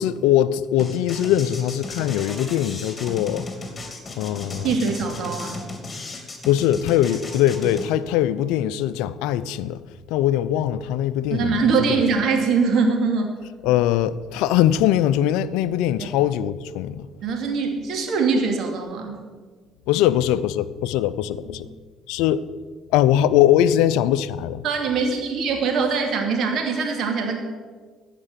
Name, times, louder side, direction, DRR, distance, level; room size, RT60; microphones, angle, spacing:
voice 1, 0.0-3.5 4.2-4.7 6.5-9.8 10.1-11.6 11.9-12.0 13.6-17.0 19.9-21.7 22.1-22.4 22.9-24.6, left 11 dB, 75° left, 0.5 m, -21 dB
sound 1, 0.8-7.9, left 2 dB, 25° left, 2.8 m, -35 dB
voice 2, 4.6-5.6 11.3-13.4 16.0-16.1 17.2-19.2 21.4-21.7 24.6-27.4, right 4 dB, 60° right, 2.6 m, -23 dB
15.0 x 5.9 x 8.4 m
hypercardioid pair, 55°, 0 cm